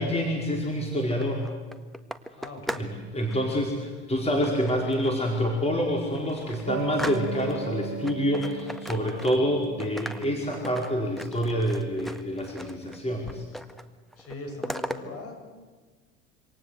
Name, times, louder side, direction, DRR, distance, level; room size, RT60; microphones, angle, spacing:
voice 1, 0.0-1.4 2.7-13.4, equal, 15° left, 1 dB, 5.0 m, -27 dB
sound 1, 1.0-3.0 3.2-3.6 4.4-5.3 5.7-5.8 6.1-7.7 8.1-9.6 9.8-13.0 13.3-13.9 14.1-15.0, equal, ahead, 1.7 m, -38 dB
voice 2, 2.4-2.9 14.2-15.4, left 3 dB, 40° left, 4 dB, 7.6 m, -40 dB
sound 2, 6.7-12.9, right 7 dB, 40° right, 3.8 m, -38 dB
27.0 x 25.5 x 8.1 m, 1.4 s
figure-of-eight pair, 65°, 36 cm